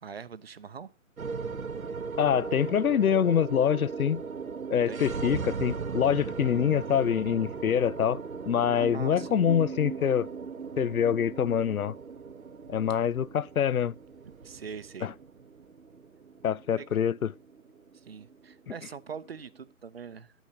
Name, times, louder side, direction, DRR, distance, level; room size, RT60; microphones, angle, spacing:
voice 1, 0.0-0.9 4.9-5.1 8.7-9.4 14.4-15.1 16.8-16.9 17.9-20.3, right 6 dB, 45° right, 0.7 m, -42 dB
sound 1, 1.2-19.6, right 5 dB, 75° right, 1.0 m, -38 dB
voice 2, 2.2-4.2 4.7-8.2 8.5-10.3 10.8-11.9 12.7-13.9 15.0-15.1 16.4-17.3, left 8 dB, 80° left, 0.6 m, -25 dB
12.0 x 8.1 x 2.8 m
figure-of-eight pair, 150°, 42 cm